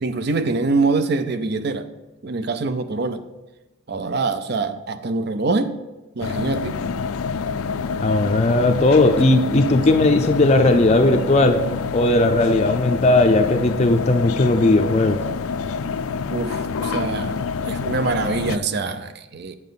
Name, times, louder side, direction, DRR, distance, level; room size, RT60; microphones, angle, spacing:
voice 1, 0.0-1.9 2.2-3.2 3.9-5.7 6.2-6.8 16.3-19.6, right 3 dB, 50° right, 11 dB, 0.5 m, -24 dB
sound 1, 6.2-18.6, left 5 dB, 85° left, 0.4 m, -27 dB
voice 2, 8.0-11.6 11.9-15.2, left 2 dB, 30° left, 5 dB, 0.5 m, -17 dB
9.3 x 7.3 x 4.0 m, 1.1 s
head